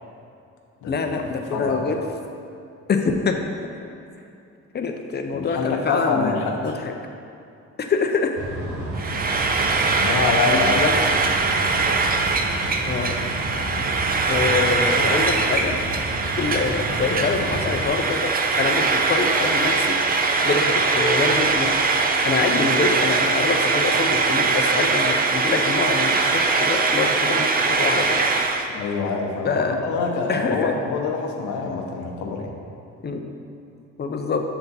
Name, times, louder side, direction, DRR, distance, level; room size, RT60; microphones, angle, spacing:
voice 1, 0.9-2.0 2.9-3.4 4.7-6.4 6.6-6.9 7.8-8.4 9.0-9.1 10.8-10.9 12.9-13.2 14.3-15.7 16.4-20.0 20.4-21.7 22.2-28.3 28.6-28.7 29.4-29.8 30.3-30.7 33.0-33.2 34.0-34.4, left 4 dB, 35° left, 5 dB, 0.5 m, -25 dB
voice 2, 1.5-1.9 5.3-6.7 9.9-10.8 28.7-32.5, left 4 dB, 75° left, 1 dB, 0.7 m, -25 dB
sound 1, 8.4-17.9, right 1 dB, 70° right, 1.1 m, -31 dB
Frying (food), 9.0-28.7, right 4 dB, 30° right, 0.4 m, -22 dB
6.8 x 3.5 x 4.0 m, 2.6 s
cardioid pair, 90°, 30 cm